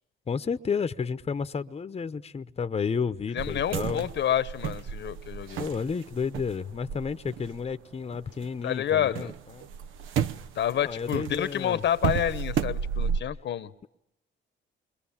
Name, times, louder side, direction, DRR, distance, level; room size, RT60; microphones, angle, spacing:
voice 1, 0.3-4.0 5.6-9.7 10.7-11.8, left 5 dB, 30° left, 0.9 m, -31 dB
voice 2, 3.3-5.6 8.6-9.3 10.5-13.7, left 10 dB, 65° left, 1.1 m, -28 dB
sound 1, 3.4-8.5 8.8-13.2, right 8 dB, 85° right, 0.9 m, -33 dB
29.0 x 23.5 x 7.2 m
cardioid pair, 90°, 20 cm